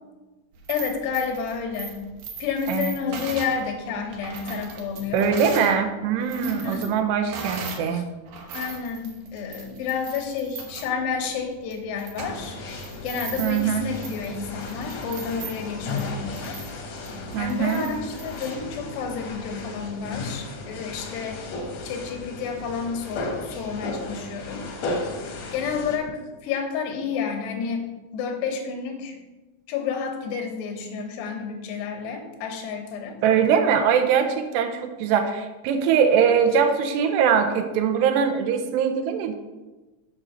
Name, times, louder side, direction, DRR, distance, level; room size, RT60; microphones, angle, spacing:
sound 1, 0.5-5.8 6.1-7.9 8.3-18.5, right 5 dB, 75° right, 3.1 m, -39 dB
voice 1, 0.7-2.0 2.4-5.3 6.4-6.9 7.9-8.0 8.5-12.6 13.0-16.6 17.4-21.4 21.8-24.6 25.5-29.2 29.7-33.2, left 6 dB, 90° left, 4 dB, 3.3 m, -30 dB
voice 2, 5.1-8.0 13.4-13.9 17.3-17.9 33.2-39.3, right 7 dB, 90° right, 7 dB, 2.9 m, -22 dB
sound 2, 12.2-26.0, left 3 dB, 65° left, 1.8 m, -35 dB
7.5 x 4.9 x 6.5 m, 1.2 s
omnidirectional pair, 4.8 m